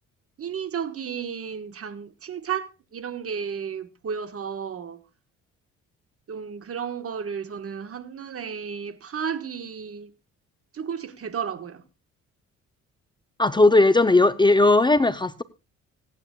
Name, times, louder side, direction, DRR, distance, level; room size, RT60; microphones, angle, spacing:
voice 1, 0.4-5.0 6.3-10.1 10.7-11.8, right 7 dB, 50° right, 1.5 m, -33 dB
voice 2, 13.4-15.4, left 2 dB, 15° left, 0.7 m, -17 dB
25.5 x 9.1 x 2.3 m
cardioid pair, 90°, 30 cm